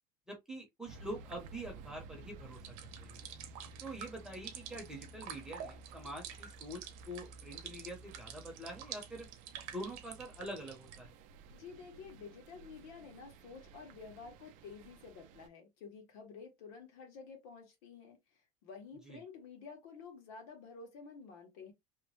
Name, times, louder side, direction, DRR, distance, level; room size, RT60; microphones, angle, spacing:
voice 1, 0.3-3.2 3.8-9.3 9.7-11.2 19.1-19.2, right 1 dB, 5° right, 0.8 m, -45 dB
sound 1, 0.9-15.5, right 3 dB, 50° right, 0.4 m, -54 dB
sound 2, 2.5-11.0, right 9 dB, 80° right, 0.7 m, -48 dB
voice 2, 11.5-18.2 18.6-21.7, left 5 dB, 75° left, 1.3 m, -51 dB
2.9 x 2.1 x 3.0 m
cardioid pair, 170°, 18 cm